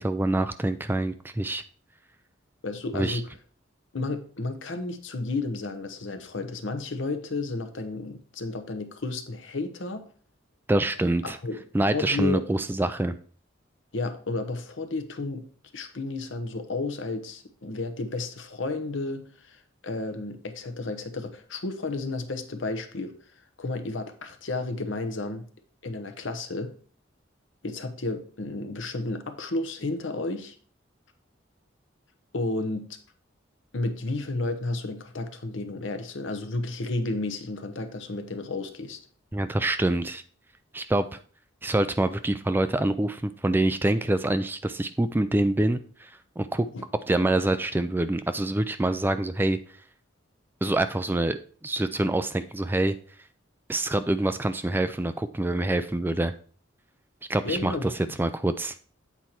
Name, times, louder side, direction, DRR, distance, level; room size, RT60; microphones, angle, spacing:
voice 1, 0.0-1.6 2.9-3.2 10.7-11.4 11.7-13.1 39.3-40.2 40.7-41.0 41.6-46.1 46.4-46.7 47.1-49.6 50.6-52.9 53.7-56.3 57.3-57.9 58.2-58.7, right 1 dB, 10° right, 11 dB, 0.3 m, -25 dB
voice 2, 2.6-3.3 3.9-10.1 11.2-11.6 11.9-12.4 13.9-15.4 15.7-23.1 23.6-25.4 25.8-26.7 27.6-30.6 32.3-32.9 33.7-39.0 46.7-46.8 57.4-58.1, left 2 dB, 75° left, 8 dB, 0.9 m, -32 dB
8.2 x 4.5 x 4.3 m, 0.43 s
head